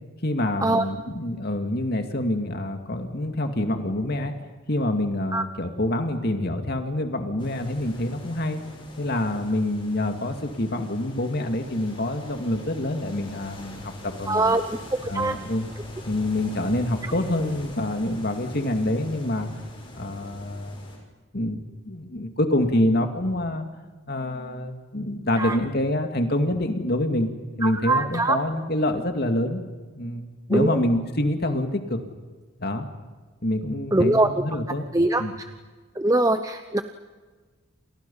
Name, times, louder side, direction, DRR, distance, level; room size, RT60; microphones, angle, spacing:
voice 1, 0.2-4.3 4.7-8.6 9.0-14.6 15.0-15.7 16.1-19.5 19.9-20.8 21.3-23.7 24.1-27.3 27.6-29.6 29.9-32.0 32.6-32.9 33.4-34.8 35.2-35.3, left 1 dB, 45° left, 6 dB, 2.4 m, -26 dB
sound 1, 7.4-21.0, left 1 dB, 25° left, 6.5 m, -43 dB
voice 2, 14.3-14.8 15.0-15.4 25.4-25.6 27.6-28.4 30.5-30.8 33.9-34.3 34.9-35.5 36.0-36.8, right 2 dB, 15° right, 8 dB, 0.8 m, -22 dB
29.5 x 28.0 x 5.7 m, 1.4 s
head